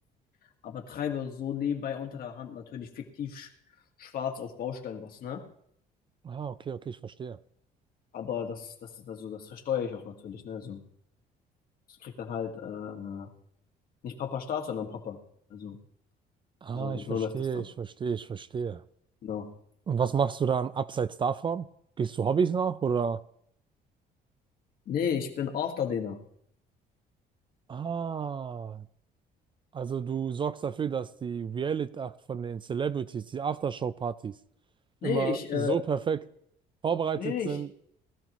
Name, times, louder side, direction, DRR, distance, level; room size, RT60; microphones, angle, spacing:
voice 1, 0.6-3.5 4.0-5.4 8.1-10.8 12.0-13.3 14.0-15.2 15.5-15.8 16.7-17.6 19.2-19.5 24.9-26.2 35.0-35.7 37.2-37.6, left 8 dB, 60° left, 1.7 m, -33 dB
voice 2, 6.2-7.4 16.6-18.8 19.9-21.7 22.0-23.2 27.7-28.9 29.7-34.4 35.0-36.2 36.8-37.7, right 6 dB, 30° right, 0.4 m, -30 dB
19.5 x 13.0 x 3.0 m
cardioid pair, 110°, 17 cm